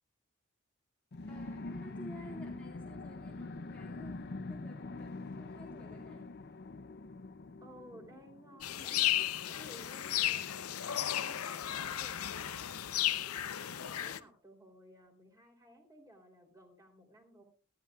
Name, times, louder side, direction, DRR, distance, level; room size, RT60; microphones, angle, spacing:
sound 1, 1.1-9.3, left 2 dB, 50° left, 0.6 m, -44 dB
voice 1, 1.3-6.3 8.7-8.9, equal, 5° left, -2 dB, 2.1 m, -53 dB
voice 2, 7.6-17.4, equal, 15° right, 3 dB, 3.3 m, -57 dB
sound 2, 8.6-14.2, left 12 dB, 85° left, 0.7 m, -34 dB
18.5 x 13.5 x 2.4 m, 0.34 s
head